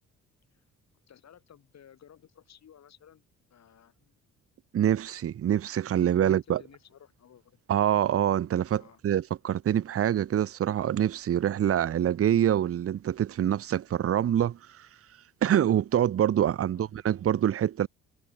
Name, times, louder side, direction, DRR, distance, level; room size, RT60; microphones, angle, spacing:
voice 1, 1.1-3.2 3.5-4.2 6.0-7.6 8.8-9.0 16.7-16.9, left 9 dB, 60° left, 7.4 m, -56 dB
voice 2, 4.7-6.6 7.7-14.9 15.4-17.9, right 10 dB, 50° right, 0.9 m, -25 dB
cardioid pair, 90°, 30 cm